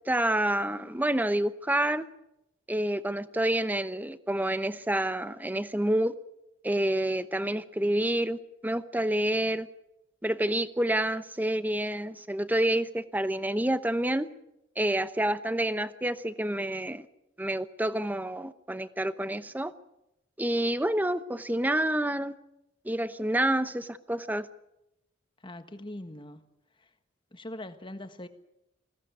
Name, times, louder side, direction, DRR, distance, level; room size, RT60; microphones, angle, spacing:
voice 1, 0.1-2.1 2.7-6.1 6.6-9.7 10.2-14.3 14.8-17.1 17.4-19.7 20.4-22.3 22.8-24.5, right 1 dB, 10° right, 0.8 m, -28 dB
voice 2, 25.4-26.5 27.3-28.3, left 1 dB, 25° left, 1.4 m, -41 dB
21.5 x 16.5 x 9.6 m
head